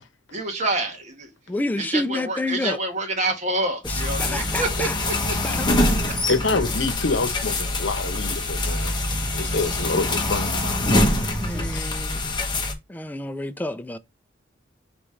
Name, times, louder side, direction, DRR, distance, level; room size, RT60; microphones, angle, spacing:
voice 1, 0.3-1.3 1.8-5.4 8.6-8.9, right 2 dB, 40° right, 1.2 m, -28 dB
voice 2, 1.5-2.8 3.8-4.9 5.4-5.7 11.4-12.2 12.9-14.0, left 2 dB, 10° left, 0.4 m, -29 dB
sound 1, 3.8-12.7, left 1 dB, 25° left, 1.0 m, -24 dB
voice 3, 6.3-8.9 9.3-10.8 11.7-11.9, left 3 dB, 75° left, 0.9 m, -27 dB
4.9 x 3.1 x 3.2 m
head